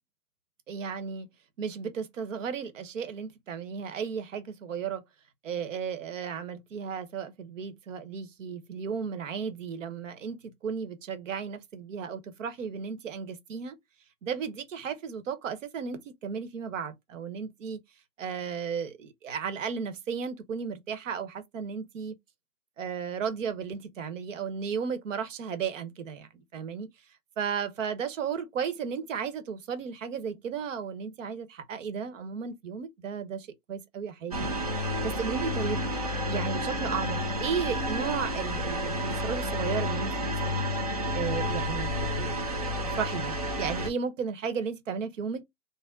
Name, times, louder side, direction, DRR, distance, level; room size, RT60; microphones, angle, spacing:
voice 1, 0.7-1.3 1.6-5.0 5.4-13.8 14.2-17.8 18.2-22.2 22.8-26.9 27.4-34.6 35.0-35.8 36.3-40.3 41.1-42.7 42.9-45.4, right 6 dB, 50° right, 0.9 m, -34 dB
sound 1, 34.3-43.9, equal, 25° right, 0.4 m, -30 dB
3.5 x 2.1 x 3.7 m
hypercardioid pair, 140°, 48 cm